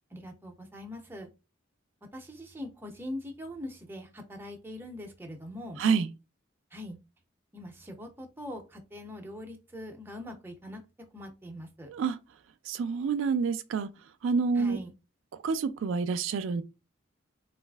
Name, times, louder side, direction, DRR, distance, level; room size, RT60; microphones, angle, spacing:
voice 1, 0.1-1.3 2.1-5.8 6.7-7.0 7.5-10.8 11.1-11.9 14.6-14.9, left 1 dB, 10° right, 0.5 m, -42 dB
voice 2, 5.8-6.1 11.9-12.2 12.7-13.9 14.2-14.8 15.4-16.6, right 5 dB, 70° right, 0.3 m, -28 dB
3.9 x 2.4 x 2.2 m
head